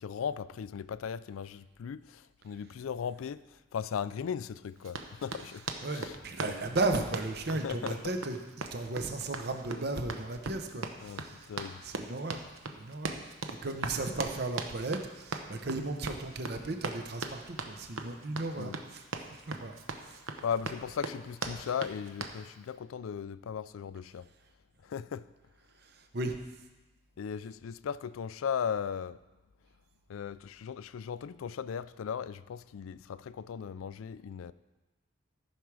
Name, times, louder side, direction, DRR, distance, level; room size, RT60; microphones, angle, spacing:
voice 1, 0.0-3.4 3.7-5.6 5.9-6.1 6.4-6.5 7.5-8.1 11.0-11.2 11.5-11.8 18.6-18.8 20.4-24.3 24.8-25.3 27.2-29.2 30.1-34.5, left 7 dB, 85° left, 0.4 m, -37 dB
Run, 4.8-22.4, right 4 dB, 80° right, 0.8 m, -40 dB
voice 2, 5.8-11.5 11.8-12.5 12.7-13.2 13.5-19.0 19.4-19.7 26.1-26.4, right 2 dB, 50° right, 0.8 m, -35 dB
14.0 x 6.0 x 4.8 m
head